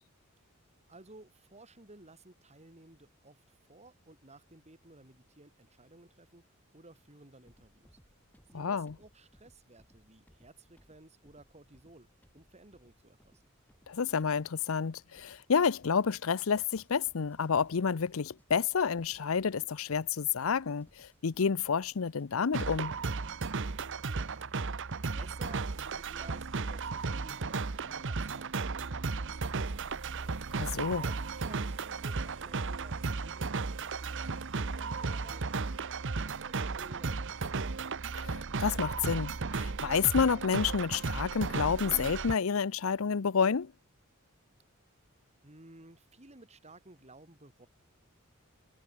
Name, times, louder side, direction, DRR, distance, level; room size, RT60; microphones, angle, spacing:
voice 1, 0.9-6.5 6.7-8.0 8.5-12.1 12.3-13.5 24.1-24.5 25.2-30.3 31.0-35.6 36.2-37.6 45.4-47.7, right 2 dB, 30° right, 3.5 m, -56 dB
sound 1, 7.4-22.7, equal, 10° left, 6.8 m, -66 dB
voice 2, 8.5-8.9 13.9-22.9 30.5-31.0 38.2-43.7, left 6 dB, 70° left, 0.6 m, -29 dB
sound 2, 22.5-42.3, right 4 dB, 60° right, 1.0 m, -35 dB
head